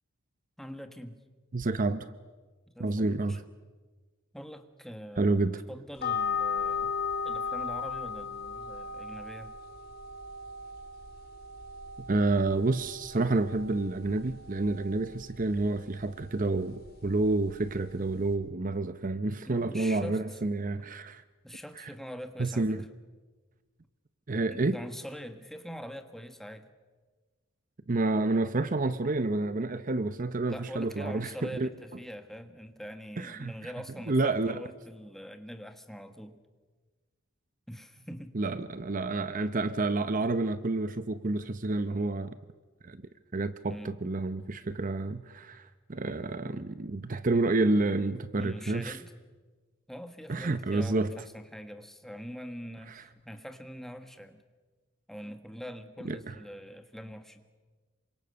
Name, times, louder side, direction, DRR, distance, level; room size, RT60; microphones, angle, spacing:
voice 1, 0.6-1.2 2.7-3.4 4.3-5.3 5.7-6.9 7.2-9.5 19.5-20.4 21.4-22.8 24.5-26.7 30.5-36.4 37.7-38.4 43.7-44.0 48.4-49.1 49.9-54.4 55.1-57.4, equal, ahead, 1.6 m, -43 dB
voice 2, 1.5-2.1 2.8-3.4 5.2-5.6 12.1-21.2 21.8-21.9 22.4-22.8 24.3-24.8 27.9-31.7 33.2-33.7 34.1-34.6 38.3-42.4 42.8-43.0 43.3-49.0 50.3-51.1 52.9-53.0 56.0-56.3, right 2 dB, 40° right, 0.7 m, -29 dB
sound 1, 6.0-18.3, left 6 dB, 50° left, 3.5 m, -37 dB
27.5 x 25.0 x 6.8 m
head